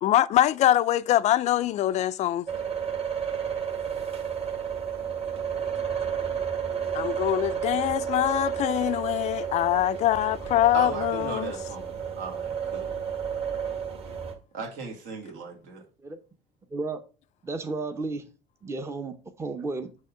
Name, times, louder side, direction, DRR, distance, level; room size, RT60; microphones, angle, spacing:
voice 1, 0.0-2.5 6.9-11.5, left 13 dB, 50° left, 0.4 m, -24 dB
sound 1, 2.5-14.3, right 7 dB, 45° right, 2.0 m, -31 dB
voice 2, 10.7-13.0 14.5-15.8, right 5 dB, 75° right, 2.1 m, -37 dB
voice 3, 17.4-18.2 18.6-19.9, right 3 dB, 20° right, 0.7 m, -33 dB
6.3 x 3.0 x 5.6 m
cardioid pair, 110°, 15 cm